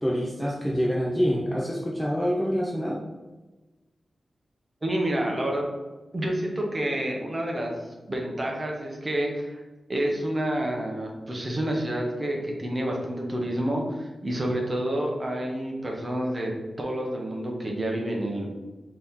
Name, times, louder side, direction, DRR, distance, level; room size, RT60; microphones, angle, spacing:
voice 1, 0.0-3.0, equal, 5° left, -3 dB, 0.4 m, -26 dB
voice 2, 4.8-5.7 6.1-7.7 8.1-9.6 9.9-16.5 16.8-18.5, right 1 dB, 20° right, 0 dB, 0.8 m, -28 dB
4.0 x 2.9 x 3.5 m, 1.1 s
wide cardioid pair, 175°, 0 cm